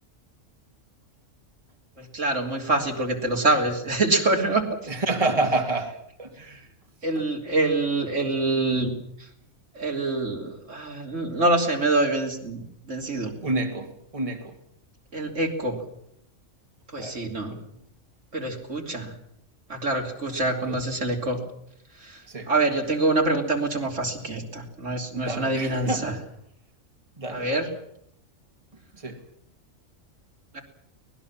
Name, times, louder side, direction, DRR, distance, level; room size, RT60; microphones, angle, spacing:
voice 1, 2.0-4.6 7.0-8.9 9.8-13.3 15.1-15.8 16.9-17.6 18.3-19.1 19.7-21.4 22.0-22.2 22.5-26.2 27.3-27.7 30.5-30.6, right 2 dB, 70° right, 1 dB, 3.6 m, -25 dB
voice 2, 4.9-6.7 13.4-14.5 17.0-17.3 17.5-17.6 20.7-20.8 22.3-22.5 25.1-26.2 27.2-27.7 29.0-29.2, right 2 dB, 25° right, 3 dB, 2.4 m, -29 dB
24.0 x 19.5 x 7.3 m, 0.73 s
omnidirectional pair, 1.3 m